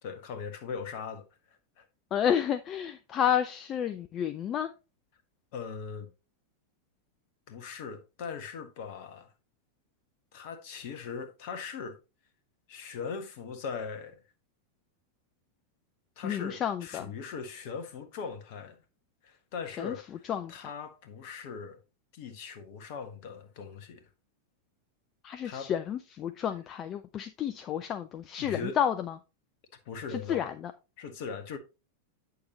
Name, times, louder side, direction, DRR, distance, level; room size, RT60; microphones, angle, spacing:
voice 1, 0.0-1.3 1.8-1.9 5.5-6.1 7.5-9.3 10.3-12.0 12.7-14.2 16.2-18.8 19.2-21.8 22.1-24.1 25.4-25.7 26.5-26.6 28.4-28.8 29.8-30.5 31.0-31.6, left 5 dB, 50° left, 1.4 m, -40 dB
voice 2, 2.1-4.7 16.2-17.1 19.8-19.9 20.3-20.5 25.2-29.1 30.3-30.7, left 9 dB, 30° left, 0.6 m, -30 dB
8.6 x 6.6 x 2.9 m
figure-of-eight pair, 90°, 0 cm